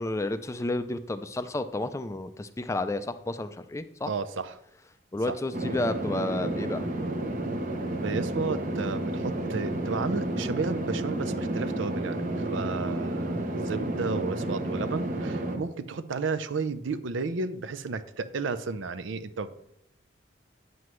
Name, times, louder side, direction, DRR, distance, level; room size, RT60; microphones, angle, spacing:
voice 1, 0.0-4.1 5.1-6.9, left 2 dB, 15° left, 11 dB, 0.3 m, -31 dB
voice 2, 4.1-4.5 5.3-5.4 8.0-19.5, right 4 dB, 85° right, 12 dB, 0.5 m, -33 dB
sound 1, 5.5-15.6, right 1 dB, 45° right, 0.8 m, -31 dB
9.3 x 7.7 x 3.1 m, 0.76 s
head